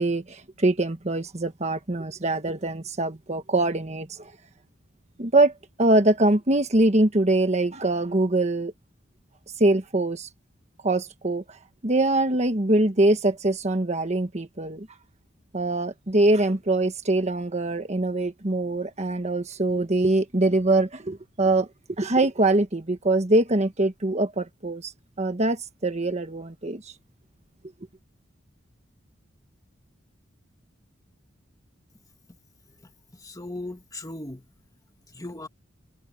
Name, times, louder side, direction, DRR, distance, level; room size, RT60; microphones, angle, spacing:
voice 1, 0.0-4.3 5.2-5.5 5.8-8.7 9.6-10.3 10.8-11.6 11.8-14.9 15.5-21.7 22.0-24.9 25.2-26.8, right 2 dB, 35° right, 1.4 m, -23 dB
voice 2, 33.2-34.5 35.1-35.5, left 2 dB, 20° left, 2.2 m, -37 dB
head